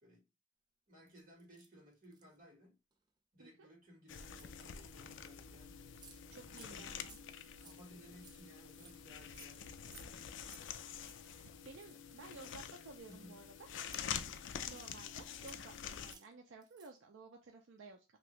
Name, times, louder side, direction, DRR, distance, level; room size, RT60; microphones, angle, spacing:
voice 1, 0.9-2.8 3.3-6.0 6.5-6.9 7.6-10.7 13.1-13.4 14.2-14.6, equal, 45° right, 1.5 m, -60 dB
sound 1, 1.1-2.4 2.9-3.1 4.1-5.1 5.5-5.6 5.8-6.2 6.5-6.7 7.0-10.1 10.4-10.6 10.9-11.2 11.6-13.4 13.8-15.0 15.3-15.7 16.0-16.3 16.6-17.0, right 5 dB, 20° right, 0.4 m, -61 dB
sound 2, 4.1-16.1, left 8 dB, 70° left, 0.4 m, -47 dB
voice 2, 6.3-7.2 11.2-13.7 14.7-18.0, right 3 dB, 80° right, 0.5 m, -55 dB
2.9 x 2.7 x 3.1 m
head